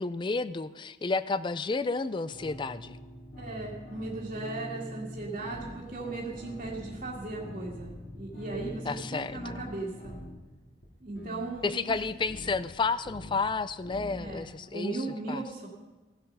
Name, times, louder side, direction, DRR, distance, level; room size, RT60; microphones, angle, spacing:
voice 1, 0.0-3.0 8.9-9.4 11.6-15.0 15.3-15.4, left 4 dB, 25° left, 15 dB, 0.3 m, -31 dB
sound 1, 2.3-10.3, equal, 45° left, 3.2 m, -44 dB
voice 2, 3.4-10.1 11.0-11.9 14.2-14.4 14.7-15.7, right 2 dB, 40° right, -6 dB, 1.8 m, -37 dB
sound 2, 5.1-5.2 5.5-6.0 6.3-8.2 8.5-9.0 9.3-9.7 10.0-10.3 10.8-10.9 11.2-13.6 13.8-14.3, left 1 dB, 65° left, 2.8 m, -45 dB
17.0 x 7.8 x 5.4 m, 1.2 s
head